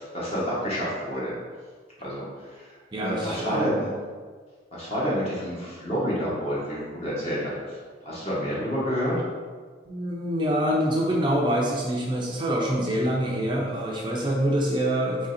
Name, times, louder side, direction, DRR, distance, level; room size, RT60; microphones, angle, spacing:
voice 1, 0.0-1.3 2.0-2.2 2.5-2.7 3.0-3.8 4.7-7.8 8.0-9.1, equal, 35° left, -7 dB, 1.4 m, -29 dB
voice 2, 2.9-3.9 9.9-15.3, equal, 25° right, -3 dB, 0.5 m, -25 dB
3.7 x 3.3 x 4.2 m, 1.5 s
head